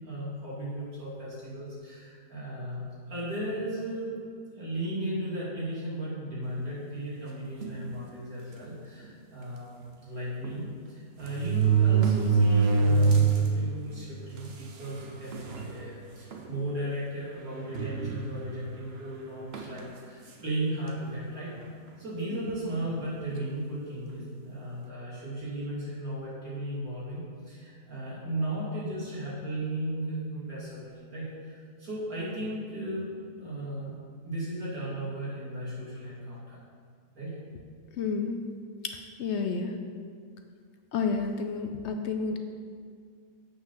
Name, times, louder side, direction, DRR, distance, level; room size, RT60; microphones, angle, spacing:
voice 1, 0.0-4.1 4.5-21.6 22.0-34.0 34.2-36.6 37.1-37.3, right 1 dB, 90° right, -8 dB, 3.2 m, -36 dB
sound 1, 7.6-7.9 8.6-8.7 9.0-9.1 10.4-10.5 11.2-13.5 13.9-14.0 14.9-15.0 15.3-15.7 16.3-16.5 17.7-18.6 19.5-19.8, right 5 dB, 50° right, 1.0 m, -24 dB
voice 2, 38.0-38.4 39.2-39.7 40.9-42.4, left 5 dB, 65° left, 5 dB, 0.8 m, -30 dB
8.2 x 6.1 x 5.6 m, 2.1 s
omnidirectional pair, 1.5 m